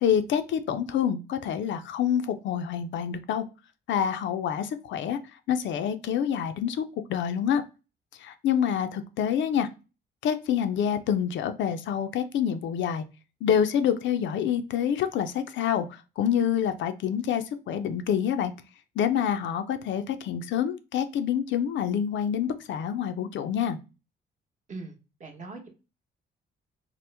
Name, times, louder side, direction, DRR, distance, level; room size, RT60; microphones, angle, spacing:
voice 1, 0.0-3.4 3.9-5.2 5.5-6.8 7.1-7.6 8.2-9.7 10.2-13.0 13.4-18.5 19.0-23.8, left 8 dB, 70° left, 9 dB, 0.4 m, -27 dB
voice 2, 24.7-25.7, right 3 dB, 40° right, 3 dB, 0.9 m, -41 dB
3.0 x 2.0 x 3.2 m, 0.30 s
cardioid pair, 90°, 20 cm